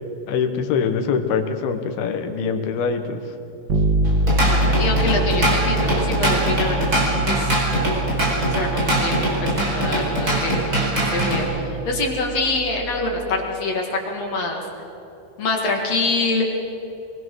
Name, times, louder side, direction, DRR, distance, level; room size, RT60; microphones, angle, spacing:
voice 1, 0.3-3.2, left 6 dB, 75° left, 7 dB, 3.1 m, -23 dB
Bass guitar, 3.7-13.4, right 1 dB, 50° right, 1.3 m, -26 dB
Drum kit / Drum, 4.0-11.4, right 1 dB, 20° right, 4.7 m, -22 dB
voice 2, 4.4-6.9 7.3-7.5 8.4-14.6 15.4-16.4, left 3 dB, 50° left, 0 dB, 2.8 m, -25 dB
23.0 x 21.5 x 6.4 m, 2.9 s
omnidirectional pair, 4.7 m